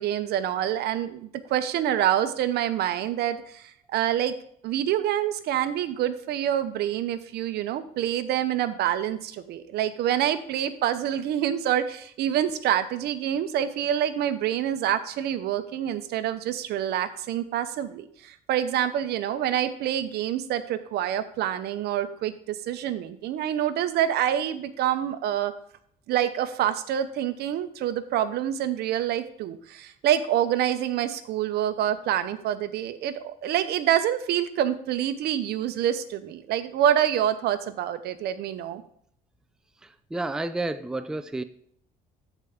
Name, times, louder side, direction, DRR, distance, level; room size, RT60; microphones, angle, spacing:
voice 1, 0.0-4.3 4.6-25.5 26.1-38.8, right 11 dB, 75° right, 12 dB, 0.8 m, -26 dB
voice 2, 40.1-41.4, right 2 dB, 5° right, 12 dB, 0.4 m, -30 dB
13.5 x 4.6 x 3.6 m, 0.65 s
cardioid pair, 110°, 17 cm